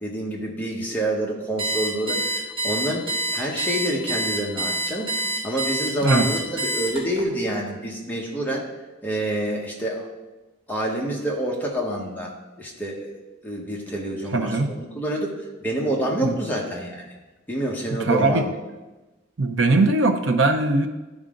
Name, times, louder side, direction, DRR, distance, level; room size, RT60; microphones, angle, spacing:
voice 1, 0.0-5.1 5.4-8.7 9.0-10.1 10.7-12.3 12.6-15.3 15.6-17.1 17.5-18.5, right 1 dB, 10° left, -2 dB, 1.3 m, -27 dB
Alarm, 1.6-7.2, right 1 dB, 25° right, 1.9 m, -26 dB
voice 2, 14.3-14.7 16.2-16.4 18.0-18.5 19.4-20.9, right 2 dB, 70° right, 6 dB, 0.7 m, -20 dB
11.5 x 4.9 x 3.8 m, 1.1 s
head